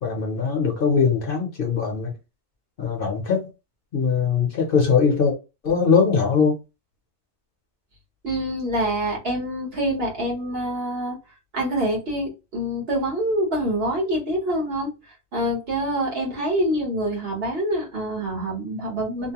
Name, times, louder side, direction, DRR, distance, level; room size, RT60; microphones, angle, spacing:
voice 1, 0.0-2.1 2.8-3.5 3.9-5.3 5.6-6.6, left 5 dB, 55° left, 0.9 m, -21 dB
voice 2, 8.2-11.2 11.5-14.9 15.3-19.3, right 1 dB, 60° right, 1.3 m, -26 dB
2.8 x 2.1 x 2.9 m
omnidirectional pair, 1.2 m